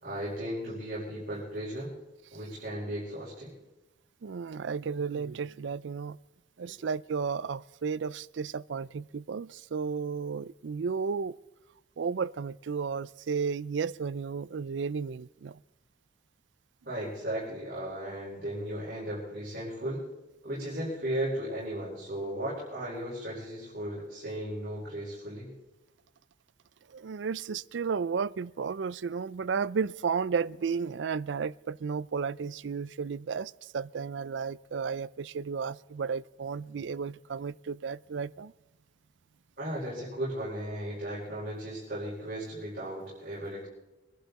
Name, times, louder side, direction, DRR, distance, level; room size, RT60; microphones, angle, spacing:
voice 1, 0.0-1.9 2.3-3.5 6.6-6.7 16.8-20.0 20.4-25.5 39.6-43.7, right 1 dB, 55° right, 5.1 m, -36 dB
voice 2, 4.2-6.2 6.6-11.3 12.0-15.6 26.9-38.5, right 5 dB, 75° right, 0.4 m, -33 dB
24.0 x 11.5 x 4.1 m
head